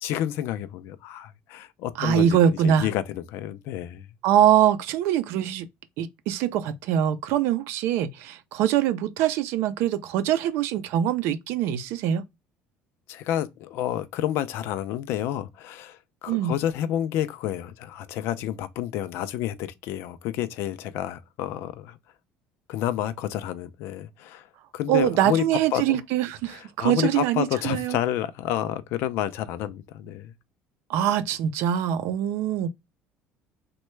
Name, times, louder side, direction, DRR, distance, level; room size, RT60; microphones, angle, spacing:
voice 1, 0.0-2.4 2.6-4.1 13.1-22.0 22.7-24.5 24.7-25.4 25.7-26.0 26.5-30.3, left 11 dB, 70° left, 0.4 m, -29 dB
voice 2, 2.0-2.9 4.2-5.7 6.0-12.2 16.3-16.5 24.9-28.0 30.9-32.7, right 10 dB, 75° right, 0.4 m, -23 dB
3.1 x 2.2 x 3.1 m
cardioid pair, 130°, 4 cm